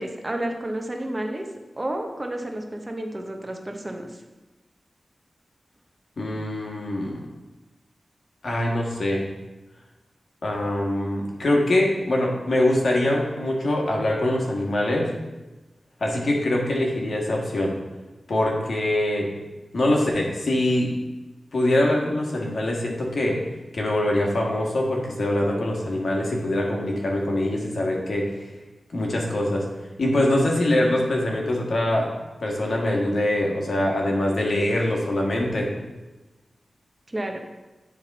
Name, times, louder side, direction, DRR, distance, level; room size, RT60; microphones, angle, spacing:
voice 1, 0.0-1.4 1.8-4.2 37.1-37.4, right 1 dB, 30° right, 3 dB, 1.2 m, -31 dB
voice 2, 6.2-7.2 8.4-9.2 10.4-15.1 16.0-17.8 18.3-19.3 19.7-20.9 21.5-23.4 23.7-28.3 28.9-29.6 30.0-32.1 32.4-35.7, left 1 dB, 70° left, -1 dB, 1.6 m, -23 dB
10.0 x 3.7 x 4.2 m, 1.1 s
cardioid pair, 50°, 0 cm